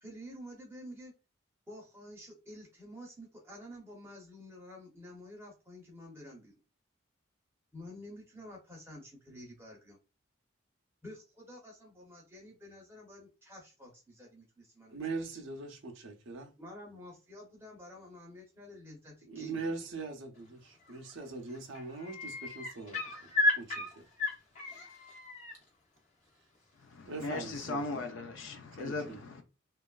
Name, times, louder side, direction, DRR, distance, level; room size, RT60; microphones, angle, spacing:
voice 1, 0.0-1.1 1.7-6.5 7.7-10.0 11.0-15.0 16.6-19.9, left 1 dB, 10° right, 0.6 m, -50 dB
voice 2, 14.9-16.5 19.2-23.0 23.6-24.0 24.6-24.8 27.1-27.9 28.8-29.2, right 3 dB, 70° right, 0.5 m, -41 dB
sound 1, 20.9-21.2 21.5-25.6 27.2-27.3, left 2 dB, 35° left, 0.7 m, -33 dB
voice 3, 26.9-29.4, left 3 dB, 70° left, 0.4 m, -38 dB
3.0 x 2.3 x 2.3 m
head